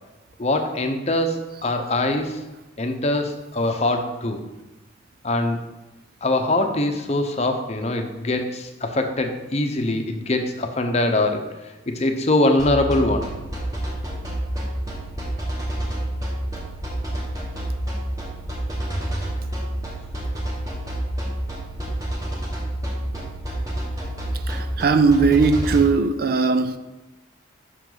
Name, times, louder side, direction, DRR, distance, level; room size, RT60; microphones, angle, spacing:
voice 1, 0.4-2.4 2.8-4.4 5.2-5.6 6.2-11.4 11.9-13.3, left 2 dB, 35° left, 0.7 m, -23 dB
sound 1, 12.6-25.8, right 1 dB, 20° right, 1.5 m, -29 dB
voice 2, 24.5-26.8, right 4 dB, 50° right, 0.4 m, -19 dB
7.8 x 6.1 x 3.9 m
head